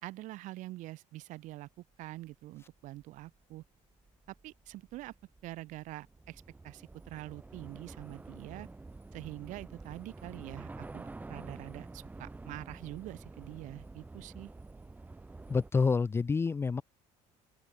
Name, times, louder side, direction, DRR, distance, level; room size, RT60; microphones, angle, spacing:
voice 1, 0.0-3.6 4.4-5.1 5.4-8.7 9.1-14.5, right 17 dB, 65° right, 4.3 m, -45 dB
Train / Subway metro underground, 2.3-2.4 2.7-15.7, right 3 dB, 10° right, 2.5 m, -49 dB
voice 2, 15.5-16.8, left 4 dB, 20° left, 0.8 m, -28 dB
open air
cardioid pair, 145°, 14 cm